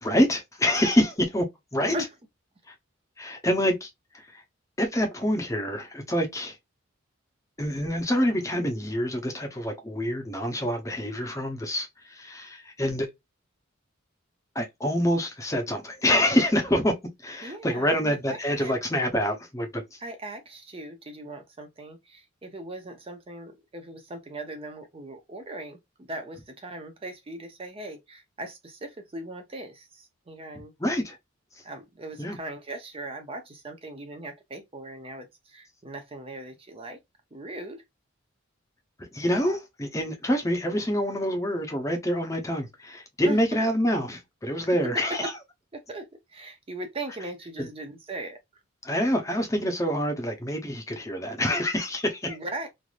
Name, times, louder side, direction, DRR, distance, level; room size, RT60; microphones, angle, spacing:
voice 1, 0.0-1.9 3.2-4.4 4.8-6.6 7.6-13.1 14.5-16.9 17.2-20.0 30.8-31.2 32.2-32.4 39.0-45.3 47.6-47.7 48.8-52.4, equal, 15° left, 0.7 m, -26 dB
voice 2, 17.4-18.8 20.0-25.8 26.1-30.7 31.6-37.0 37.3-37.8 43.2-43.4 45.1-45.2 45.7-48.4 52.3-52.7, right 2 dB, 25° right, 0.5 m, -39 dB
3.2 x 2.5 x 2.4 m
head